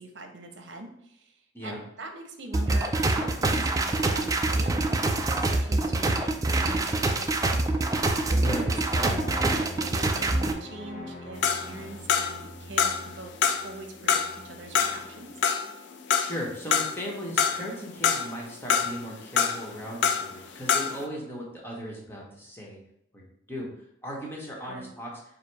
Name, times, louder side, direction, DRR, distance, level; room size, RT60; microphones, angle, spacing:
voice 1, 0.0-5.1 5.4-7.3 8.3-13.3 13.6-15.3 24.6-24.9, right 2 dB, 80° right, 4 dB, 0.8 m, -43 dB
sound 1, 2.5-10.5, right 2 dB, 20° right, 0.3 m, -25 dB
voice 2, 8.3-8.7 16.2-22.8 23.1-23.2 23.5-23.7 24.0-25.1, equal, 10° left, -3 dB, 1.2 m, -37 dB
sound 2, 8.9-15.4, left 1 dB, 40° left, 0.7 m, -42 dB
sound 3, 11.4-12.5 12.8-13.7 14.1-17.1 17.4-18.4 18.7-20.4 20.6-21.0, left 7 dB, 75° left, 0.4 m, -25 dB
4.9 x 2.2 x 4.7 m, 0.75 s
head